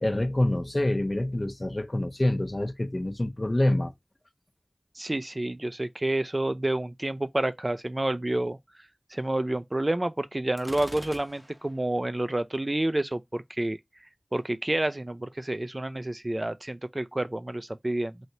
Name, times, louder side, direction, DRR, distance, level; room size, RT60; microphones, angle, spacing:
voice 1, 0.0-3.9, left 1 dB, 50° left, 0.5 m, -26 dB
voice 2, 5.0-8.6 9.1-13.8 14.3-18.2, right 1 dB, 45° right, 0.3 m, -29 dB
Gunshot gunfire, 10.6-11.8, equal, 20° right, 0.7 m, -44 dB
3.2 x 2.8 x 2.6 m
wide cardioid pair, 40°, 0 cm